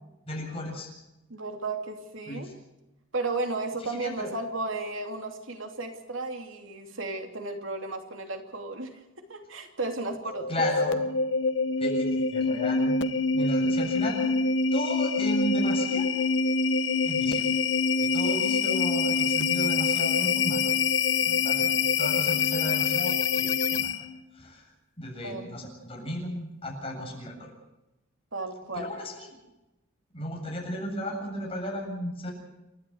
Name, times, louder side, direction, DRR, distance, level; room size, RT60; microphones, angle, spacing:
voice 1, 0.3-0.9 2.3-2.5 3.8-4.3 10.5-11.0 11.8-13.0 13.3-14.4 14.7-16.1 17.0-17.5 18.0-20.7 21.2-23.9 24.3-27.5 28.7-29.3 30.1-32.3, equal, 30° left, 0 dB, 7.6 m, -34 dB
voice 2, 1.3-2.5 3.1-9.0 9.3-10.5 22.7-22.8 25.2-25.5 28.3-28.9, right 3 dB, 75° right, 4 dB, 3.0 m, -34 dB
sound 1, 10.2-24.2, left 4 dB, 60° left, 1.0 m, -25 dB
29.5 x 12.5 x 8.0 m, 0.96 s
head